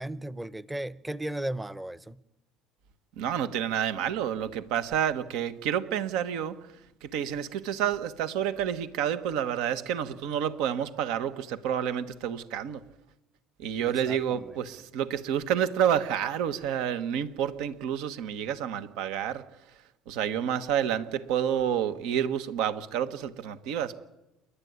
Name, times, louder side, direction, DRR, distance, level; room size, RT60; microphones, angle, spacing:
voice 1, 0.0-2.2 13.8-14.6, right 1 dB, 10° right, 0.8 m, -36 dB
voice 2, 3.2-6.7 7.0-12.8 13.6-19.8 20.1-24.0, right 9 dB, 75° right, 1.3 m, -29 dB
28.5 x 11.5 x 9.6 m
supercardioid pair, 100°, 0 cm